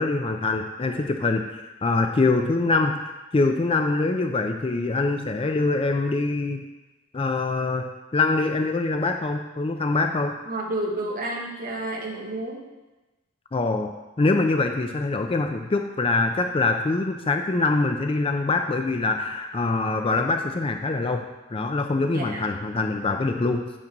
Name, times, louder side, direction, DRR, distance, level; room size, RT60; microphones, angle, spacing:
voice 1, 0.0-6.6 7.1-10.3 13.5-21.3 21.5-23.7, left 3 dB, 25° left, 5 dB, 0.4 m, -24 dB
voice 2, 10.5-12.6 22.1-22.4, right 1 dB, 40° right, -1 dB, 1.4 m, -30 dB
8.6 x 6.0 x 3.9 m, 1.1 s
head